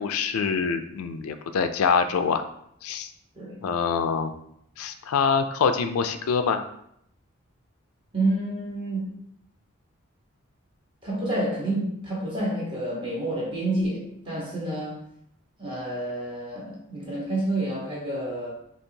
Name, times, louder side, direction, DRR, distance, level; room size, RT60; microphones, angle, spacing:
voice 1, 0.0-2.4 2.8-3.1 3.6-4.3 4.8-6.7, left 6 dB, 85° left, 8 dB, 0.4 m, -25 dB
voice 2, 8.1-9.1 11.0-15.0 15.6-18.5, right 1 dB, 25° right, -5 dB, 1.1 m, -29 dB
4.4 x 2.8 x 2.7 m, 0.74 s
head